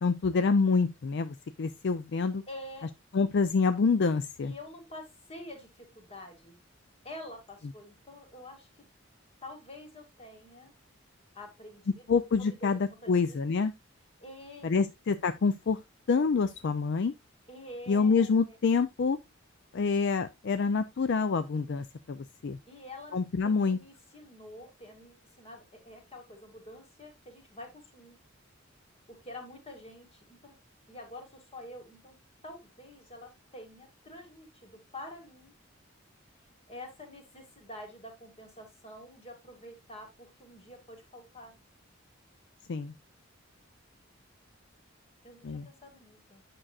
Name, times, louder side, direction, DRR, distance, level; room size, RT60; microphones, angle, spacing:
voice 1, 0.0-2.4 3.1-4.5 12.1-13.7 14.6-15.8 16.1-17.1 17.9-19.2 19.7-22.6 23.1-23.8 42.7-42.9 45.4-45.7, left 4 dB, 60° left, 0.4 m, -27 dB
voice 2, 2.5-2.9 4.4-6.6 7.0-8.9 9.4-10.7 11.3-12.1 12.6-12.7 13.0-13.4 14.2-14.8 17.5-18.6 22.7-28.2 29.1-30.6 30.9-32.2 32.4-35.5 36.7-41.5 45.2-46.4, left 1 dB, 30° left, 2.2 m, -47 dB
8.7 x 6.2 x 2.4 m
head